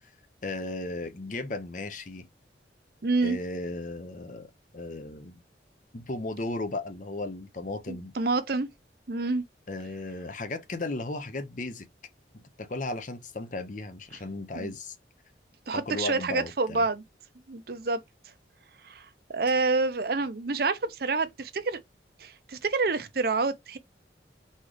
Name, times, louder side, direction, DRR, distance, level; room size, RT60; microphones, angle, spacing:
voice 1, 0.4-2.3 3.2-4.5 4.7-5.4 5.9-8.1 9.7-11.8 12.3-15.0 15.7-16.9, left 2 dB, 45° left, 0.8 m, -35 dB
voice 2, 3.0-3.4 7.9-8.7 9.1-9.4 14.5-14.7 15.7-17.0 17.5-18.0 18.8-19.1 19.3-21.8 22.2-23.8, right 3 dB, 55° right, 0.7 m, -28 dB
4.3 x 3.8 x 3.2 m
head